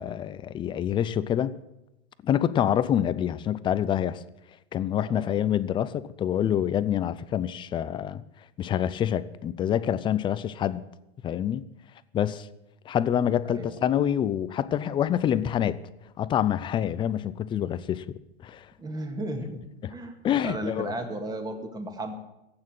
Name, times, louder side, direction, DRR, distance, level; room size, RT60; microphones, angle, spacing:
voice 1, 0.0-1.5 2.2-4.2 4.7-8.2 8.6-10.8 11.2-11.6 12.1-12.5 12.9-15.8 16.2-18.0 18.4-18.7 20.2-20.9, left 10 dB, 15° left, 0.5 m, -26 dB
voice 2, 13.4-13.8 18.8-20.2 20.4-22.1, right 1 dB, 10° right, 2.0 m, -34 dB
15.5 x 8.8 x 9.0 m
supercardioid pair, 140°, 31 cm